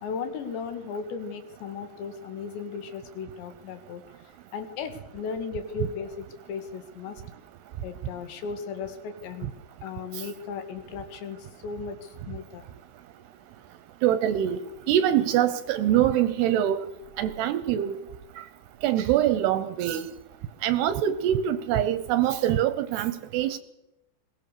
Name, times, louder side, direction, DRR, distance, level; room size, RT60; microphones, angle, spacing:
voice 1, 0.0-4.0 4.5-7.2 7.8-9.5 9.8-12.7, left 5 dB, 75° left, 8 dB, 4.1 m, -36 dB
voice 2, 14.0-14.6 14.9-16.9 17.2-18.0 18.8-20.1 20.6-23.6, right 11 dB, 75° right, 12 dB, 2.6 m, -24 dB
21.5 x 18.5 x 6.8 m, 0.93 s
omnidirectional pair, 5.3 m